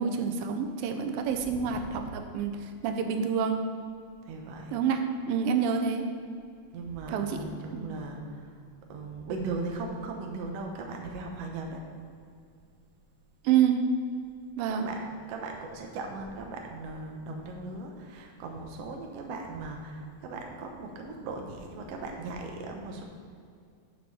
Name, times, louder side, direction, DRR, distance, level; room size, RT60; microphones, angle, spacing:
voice 1, 0.0-3.6 4.7-6.1 7.1-7.4 7.7-8.0 13.4-13.8 14.6-14.9, right 7 dB, 85° right, 6 dB, 2.5 m, -28 dB
voice 2, 1.3-2.0 4.2-4.7 6.7-8.6 8.9-11.8 14.7-23.0, right 3 dB, 70° right, 2 dB, 1.5 m, -38 dB
6.8 x 6.7 x 5.6 m, 2.4 s
omnidirectional pair, 4.0 m